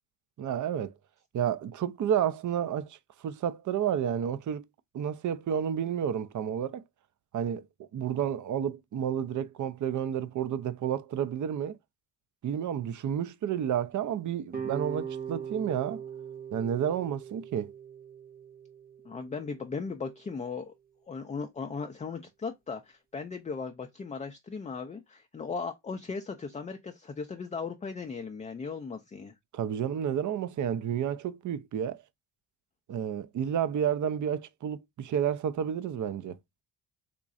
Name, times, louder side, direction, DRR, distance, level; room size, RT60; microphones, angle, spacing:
voice 1, 0.4-0.9 1.3-3.0 3.2-4.7 4.9-6.8 7.3-7.7 7.9-11.8 12.4-16.0 16.5-17.7 29.5-32.0 32.9-36.4, right 9 dB, 45° right, 0.5 m, -30 dB
sound 1, 14.5-19.6, right 7 dB, 20° right, 0.8 m, -40 dB
voice 2, 19.1-20.7 21.1-29.3, left 5 dB, 20° left, 0.3 m, -37 dB
3.7 x 3.0 x 2.4 m
supercardioid pair, 60°, 46 cm